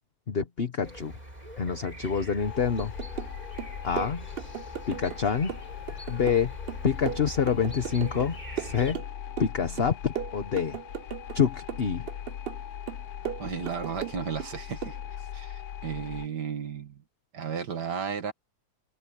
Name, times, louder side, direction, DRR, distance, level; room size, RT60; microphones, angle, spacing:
voice 1, 0.3-1.1 1.6-2.9 3.8-4.3 4.9-5.5 6.1-6.5 6.8-9.0 9.4-10.8 11.3-12.1, left 6 dB, 40° left, 1.3 m, -27 dB
sound 1, 0.8-9.0, right 1 dB, 25° right, 5.1 m, -44 dB
sound 2, 2.4-16.3, left 10 dB, 70° left, 1.2 m, -40 dB
sound 3, 2.8-3.3 3.6-5.2 5.5-8.3 8.6-9.5 9.8-11.4 11.7-12.6 12.9-14.5 14.8-15.0, right 10 dB, 65° right, 0.6 m, -36 dB
voice 2, 13.4-15.0 15.3-17.0 17.3-18.3, right 7 dB, 85° right, 2.3 m, -34 dB
omnidirectional pair, 1.7 m